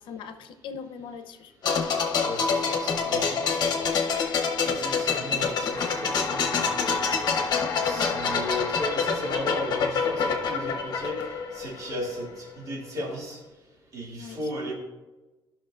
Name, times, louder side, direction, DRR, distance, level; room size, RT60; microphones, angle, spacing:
voice 1, 0.0-1.5 7.9-8.3 14.2-14.5, left 6 dB, 80° left, 9 dB, 0.7 m, -41 dB
sound 1, 1.6-12.3 12.5-12.7, left 5 dB, 55° left, 0.9 m, -27 dB
voice 2, 2.2-3.9 4.6-7.2 7.8-11.2 11.5-13.4 13.9-14.7, equal, 45° right, -2 dB, 2.4 m, -36 dB
sound 2, 5.7-11.7, left 3 dB, 35° left, 1.1 m, -37 dB
13.0 x 5.9 x 2.4 m, 1.1 s
cardioid pair, 135°, 8 cm